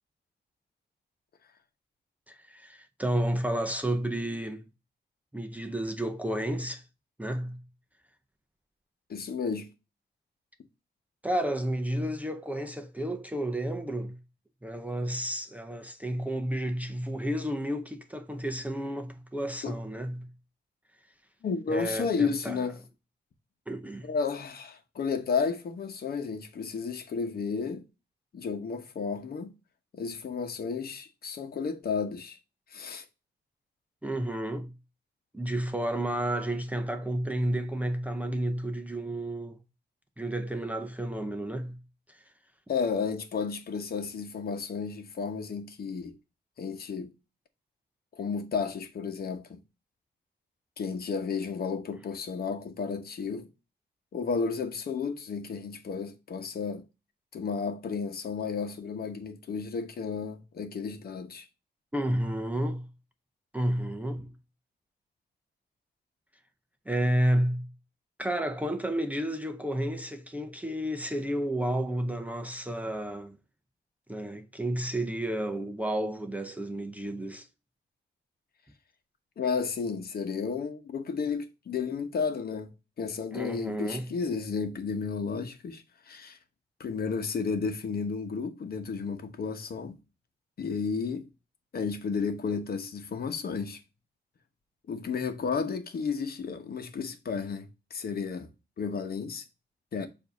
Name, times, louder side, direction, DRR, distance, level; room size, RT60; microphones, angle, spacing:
voice 1, 2.3-4.6 5.3-6.8 7.2-7.6 11.2-14.2 14.6-20.3 21.7-22.6 23.7-24.1 34.0-34.7 35.3-39.6 40.2-41.8 42.1-42.2 61.9-62.9 63.5-64.3 66.9-67.7 68.2-73.4 74.1-77.5 83.3-84.1, right 1 dB, 10° right, 0.6 m, -31 dB
voice 2, 9.1-9.7 19.6-19.8 21.4-22.8 24.0-27.8 28.3-29.5 29.9-32.4 32.7-33.0 42.7-46.1 46.6-47.1 48.1-49.6 50.8-53.5 54.1-56.8 57.3-61.5 79.4-82.7 83.0-86.4 86.8-90.0 90.6-91.3 91.7-93.8 94.9-98.5 98.8-99.4 99.9-100.1, left 5 dB, 60° left, 1.0 m, -32 dB
7.1 x 2.7 x 5.1 m
wide cardioid pair, 140°, 18 cm